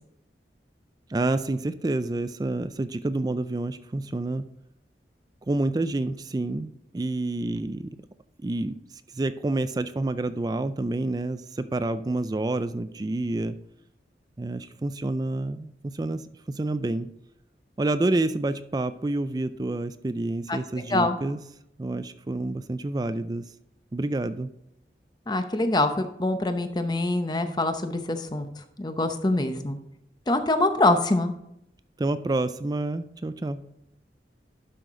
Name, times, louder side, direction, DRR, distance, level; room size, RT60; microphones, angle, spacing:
voice 1, 1.1-4.5 5.5-7.9 8.4-8.8 9.1-13.5 14.4-17.1 17.8-21.4 21.8-23.4 23.9-24.5 32.0-33.6, right 2 dB, 20° right, 12 dB, 0.3 m, -28 dB
voice 2, 25.3-28.5 28.8-29.8 30.3-31.3, left 2 dB, 25° left, 8 dB, 0.8 m, -24 dB
12.0 x 5.9 x 3.8 m, 0.79 s
head